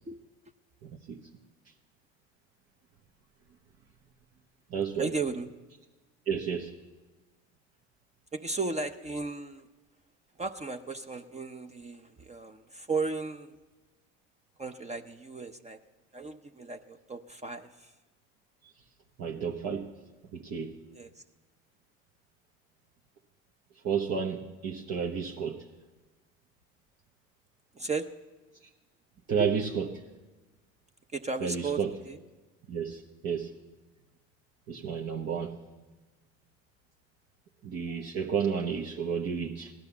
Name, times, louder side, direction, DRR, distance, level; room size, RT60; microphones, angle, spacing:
voice 1, 0.8-1.2 4.7-5.2 6.3-6.7 19.2-19.9 20.3-20.8 23.8-25.6 29.3-30.0 31.4-31.9 32.7-33.5 34.7-35.6 37.6-39.7, right 6 dB, 60° right, 0 dB, 1.2 m, -31 dB
voice 2, 5.0-5.5 8.3-9.7 10.4-13.6 14.6-15.8 16.1-17.9 20.9-21.1 27.7-28.1 29.4-29.5 31.1-31.8 32.1-32.2, right 3 dB, 20° right, 7 dB, 0.7 m, -35 dB
16.5 x 11.5 x 7.0 m, 1.2 s
supercardioid pair, 80°, 30 cm